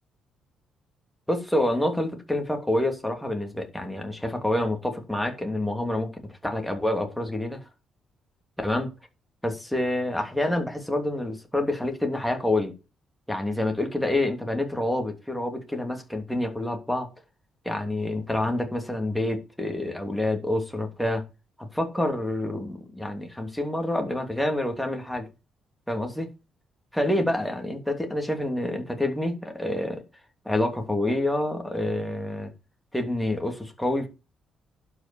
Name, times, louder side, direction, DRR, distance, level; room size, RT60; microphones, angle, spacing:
voice 1, 1.3-7.6 8.6-8.9 9.4-12.7 13.3-17.1 17.6-21.2 21.6-25.3 25.9-26.3 26.9-30.0 30.4-32.5 32.9-34.1, left 1 dB, 5° left, 3.0 m, -27 dB
11.5 x 5.8 x 7.1 m
cardioid pair, 90°, 0 cm